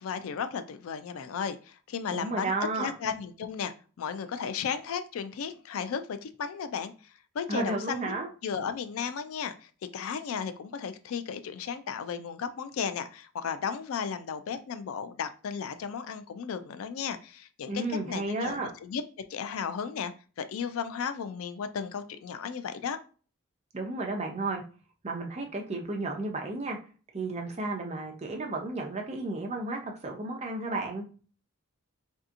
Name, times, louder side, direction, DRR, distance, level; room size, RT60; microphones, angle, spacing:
voice 1, 0.0-8.1 8.4-19.0 19.3-20.1 20.4-23.0, left 6 dB, 75° left, 11 dB, 0.3 m, -35 dB
voice 2, 2.1-2.9 7.5-8.3 17.7-18.7 23.7-24.6 25.0-26.8 27.1-31.0, right 2 dB, 30° right, 2 dB, 0.5 m, -33 dB
3.3 x 2.7 x 2.5 m, 0.38 s
head